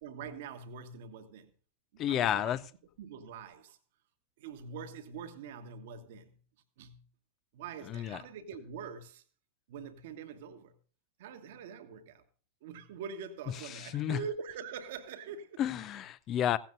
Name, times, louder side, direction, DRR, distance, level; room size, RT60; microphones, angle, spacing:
voice 1, 0.0-1.5 1.9-2.5 3.0-3.8 4.4-6.4 6.8-7.0 7.5-9.2 9.7-10.7 11.2-12.2 12.6-15.6, right 6 dB, 55° right, 1.4 m, -44 dB
voice 2, 2.0-2.6 7.9-8.2 13.7-14.2 15.6-16.6, left 11 dB, 30° left, 0.6 m, -31 dB
16.5 x 16.0 x 2.6 m
figure-of-eight pair, 90°, 0 cm